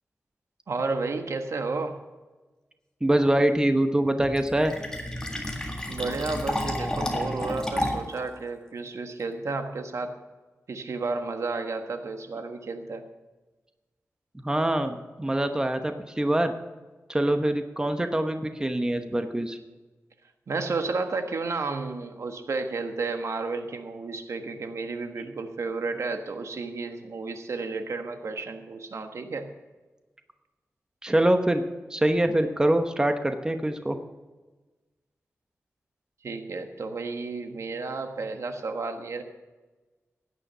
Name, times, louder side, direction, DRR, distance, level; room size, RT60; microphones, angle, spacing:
voice 1, 0.7-2.0 5.9-10.2 10.7-13.1 20.5-29.5 36.2-39.2, right 3 dB, 70° right, 6 dB, 1.3 m, -32 dB
voice 2, 3.0-4.7 14.4-16.5 17.1-19.6 31.0-31.6 31.9-34.0, right 1 dB, 15° right, 7 dB, 0.9 m, -24 dB
Fill (with liquid), 4.2-8.2, left 1 dB, 15° left, 1.8 m, -31 dB
16.5 x 9.8 x 5.5 m, 1.2 s
wide cardioid pair, 140°, 5 cm